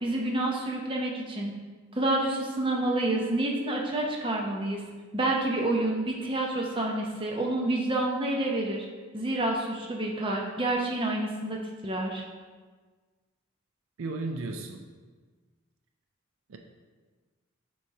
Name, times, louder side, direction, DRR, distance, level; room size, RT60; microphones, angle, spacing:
voice 1, 0.0-1.5 2.0-4.8 5.1-8.8 9.1-12.2, right 2 dB, 25° right, -1 dB, 0.7 m, -28 dB
voice 2, 14.0-14.8 16.5-16.6, right 3 dB, 65° right, 3 dB, 0.4 m, -34 dB
6.8 x 3.1 x 4.7 m, 1.4 s
head